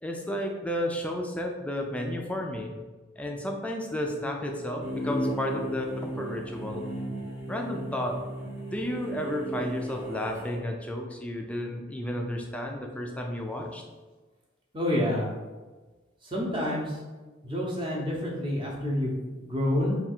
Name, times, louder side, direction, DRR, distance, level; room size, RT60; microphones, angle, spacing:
voice 1, 0.0-2.7 3.2-6.9 7.5-8.2 8.7-13.8, left 1 dB, 5° left, 1 dB, 0.3 m, -32 dB
sound 1, 4.8-10.6, right 1 dB, 65° right, 1.0 m, -35 dB
voice 2, 14.7-15.3 16.2-17.0 17.4-20.0, left 1 dB, 25° right, -4 dB, 0.7 m, -28 dB
3.5 x 2.4 x 4.3 m, 1.3 s
head